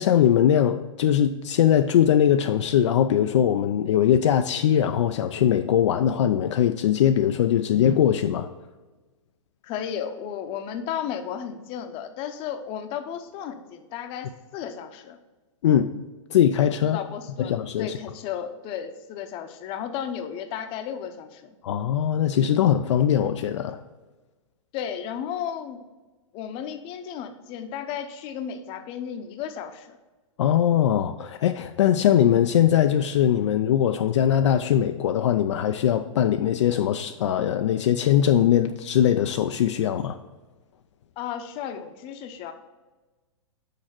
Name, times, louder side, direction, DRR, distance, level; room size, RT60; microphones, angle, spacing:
voice 1, 0.0-8.5 15.6-15.9 16.3-17.0 17.4-17.9 21.6-23.8 30.4-40.2, left 10 dB, 65° left, 7 dB, 0.4 m, -21 dB
voice 2, 9.6-15.2 16.8-21.5 24.7-25.8 26.3-30.0 41.2-42.5, left 8 dB, 35° left, 8 dB, 0.7 m, -34 dB
6.5 x 4.8 x 5.8 m, 1.2 s
hypercardioid pair, 115°, 16 cm